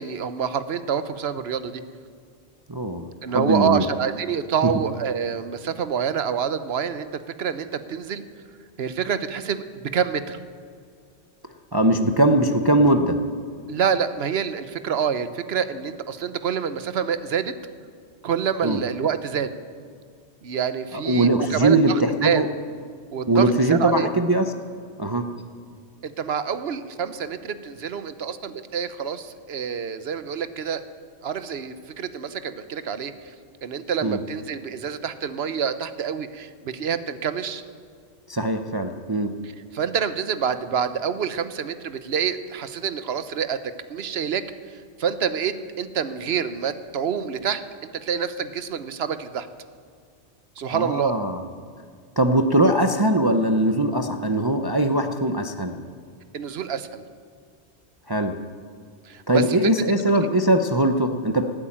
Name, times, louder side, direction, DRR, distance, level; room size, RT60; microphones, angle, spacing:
voice 1, 0.0-1.8 3.2-8.2 8.8-10.4 13.7-17.5 18.2-19.5 20.4-22.4 23.1-24.1 26.0-30.8 31.2-33.3 33.6-37.6 39.4-43.6 43.9-44.4 45.0-47.6 47.9-49.5 50.6-51.1 56.3-57.0 59.0-59.4, right 7 dB, 60° right, 12 dB, 1.0 m, -27 dB
voice 2, 2.7-3.1 3.3-3.8 11.7-13.2 18.6-18.8 21.0-22.5 23.3-24.5 25.0-25.3 34.0-34.2 38.3-39.3 50.7-51.4 52.2-55.7 58.1-58.3 59.3-61.5, right 1 dB, 25° right, 5 dB, 0.6 m, -21 dB
17.5 x 8.6 x 8.7 m, 2.2 s
omnidirectional pair, 1.2 m